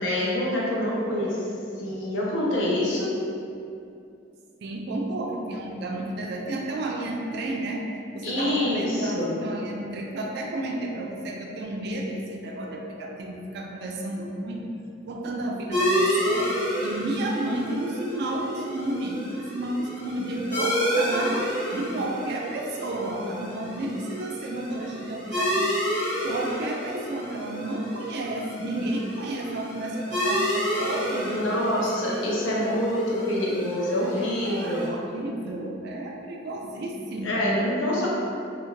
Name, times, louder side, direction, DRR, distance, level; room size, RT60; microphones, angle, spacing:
voice 1, 0.0-1.4 1.8-3.2 8.2-9.3 31.3-34.9 37.2-38.1, left 1 dB, 75° left, -5 dB, 0.6 m, -26 dB
voice 2, 4.6-7.8 8.1-14.6 15.1-25.7 26.2-31.8 34.2-37.4, right 1 dB, 55° right, 1 dB, 0.3 m, -31 dB
sound 1, 15.7-34.9, equal, 35° left, 1.0 m, -30 dB
2.4 x 2.3 x 3.0 m, 2.5 s
head